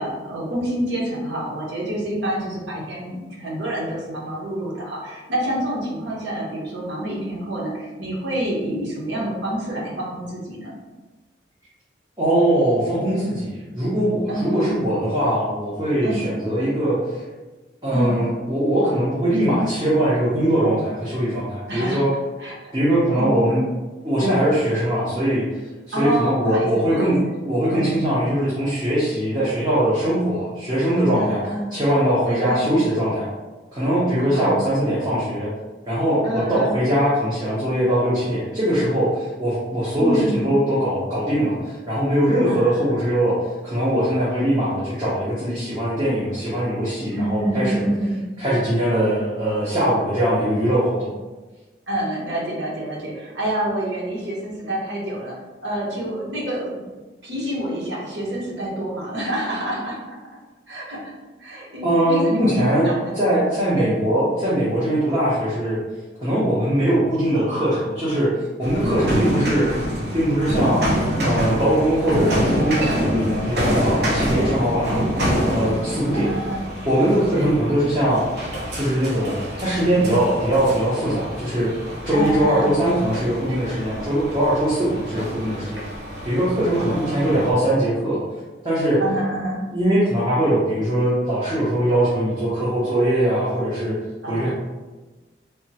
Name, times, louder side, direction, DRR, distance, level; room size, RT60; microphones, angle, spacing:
voice 1, 0.0-10.7 14.3-14.8 16.0-16.3 17.9-18.2 21.7-22.0 22.4-22.5 23.1-23.3 25.9-27.3 27.7-28.0 31.2-31.7 32.3-32.6 34.2-34.6 36.2-36.7 40.0-40.5 42.5-43.0 47.1-48.2 51.9-55.3 55.6-56.8 57.2-60.0 60.7-61.1 61.4-63.2 63.8-64.0 68.9-69.4 72.9-73.5 74.3-74.6 76.1-76.6 77.3-77.6 82.1-82.7 86.8-87.4 89.0-89.7 94.2-94.5, right 1 dB, 85° right, -5 dB, 0.9 m, -28 dB
voice 2, 12.2-17.2 17.8-22.1 22.7-23.6 24.0-25.4 26.0-27.2 27.4-31.4 31.7-33.3 33.7-35.5 35.9-43.3 43.6-47.8 48.4-51.1 61.8-65.8 66.2-68.3 68.6-69.7 70.1-75.1 75.5-76.3 76.9-78.2 78.7-81.7 82.0-85.8 86.2-88.2 88.6-89.0 89.7-93.9 94.3-94.5, right 1 dB, 25° right, -10 dB, 0.7 m, -21 dB
sound 1, 68.6-87.5, equal, 65° right, 0.6 m, -26 dB
3.4 x 2.0 x 2.8 m, 1.2 s
head